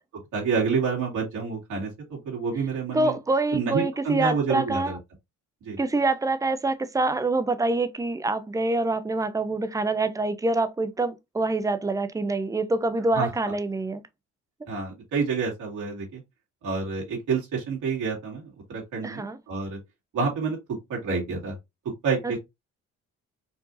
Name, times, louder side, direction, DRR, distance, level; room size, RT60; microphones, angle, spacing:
voice 1, 0.3-3.2 3.5-5.0 5.7-5.8 13.2-13.5 14.7-16.2 16.6-19.8 20.1-20.6 20.9-21.5 22.0-22.4, right 5 dB, 80° right, 2.1 m, -28 dB
voice 2, 2.9-5.0 5.8-14.0 19.0-19.4 22.2-22.4, right 2 dB, 10° right, 0.5 m, -26 dB
4.7 x 2.7 x 2.5 m
cardioid pair, 90°, 30 cm